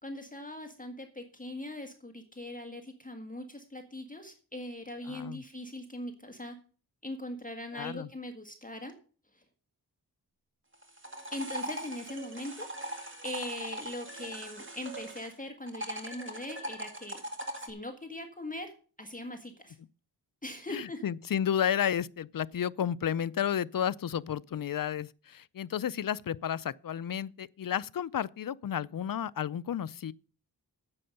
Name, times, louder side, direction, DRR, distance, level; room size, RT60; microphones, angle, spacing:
voice 1, 0.0-6.5 7.0-8.9 9.3-9.4 11.3-17.2 17.6-18.7 19.0-19.8 20.4-21.0, left 1 dB, 20° left, 1.6 m, -41 dB
voice 2, 5.1-5.4 7.7-8.1 20.7-30.1, left 9 dB, 55° left, 0.5 m, -32 dB
sound 1, 10.7-15.3 15.7-17.7, right 1 dB, 30° right, 2.2 m, -40 dB
9.9 x 7.7 x 6.5 m
wide cardioid pair, 65°, 40 cm